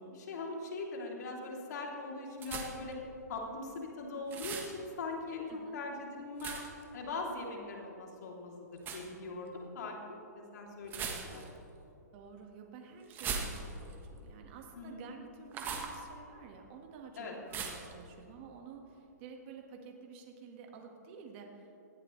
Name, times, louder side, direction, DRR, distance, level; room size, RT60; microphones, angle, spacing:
voice 1, 0.0-3.0 3.3-5.5 5.7-6.6 6.9-9.5 9.7-11.4 14.7-15.0 17.2-17.3, left 3 dB, 70° left, -1 dB, 3.2 m, -41 dB
sound 1, 2.4-2.9 4.3-4.7 6.4-6.8 8.8-9.1 10.9-11.6 13.1-13.9 15.5-16.0 17.5-17.9, right 6 dB, 20° right, 1.5 m, -39 dB
voice 2, 5.5-5.8 12.1-21.8, right 6 dB, 40° right, 2 dB, 1.8 m, -51 dB
19.5 x 13.5 x 3.3 m, 2.9 s
hypercardioid pair, 145°, 10 cm